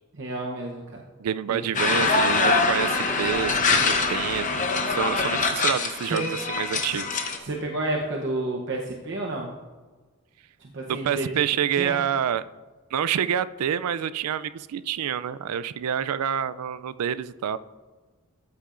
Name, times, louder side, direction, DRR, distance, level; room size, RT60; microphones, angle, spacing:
voice 1, 0.1-1.0 1.5-1.6 6.0-6.3 6.8-6.9 7.4-9.5 10.6-11.3 11.7-12.0, right 2 dB, 55° right, -1 dB, 0.8 m, -30 dB
voice 2, 1.2-7.2 10.9-12.4 12.9-17.6, right 9 dB, 90° right, 16 dB, 0.4 m, -28 dB
sound 1, 1.7-7.4, left 4 dB, 35° left, 0.8 m, -24 dB
14.0 x 8.3 x 2.5 m, 1.3 s
head